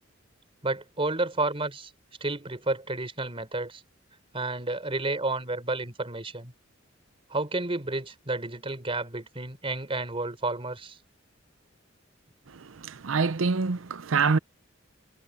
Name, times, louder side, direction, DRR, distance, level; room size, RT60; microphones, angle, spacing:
voice 1, 0.6-1.9 2.2-3.8 4.3-6.5 7.3-11.0, right 2 dB, 30° right, 4.3 m, -31 dB
voice 2, 12.5-14.4, right 4 dB, 85° right, 0.6 m, -26 dB
head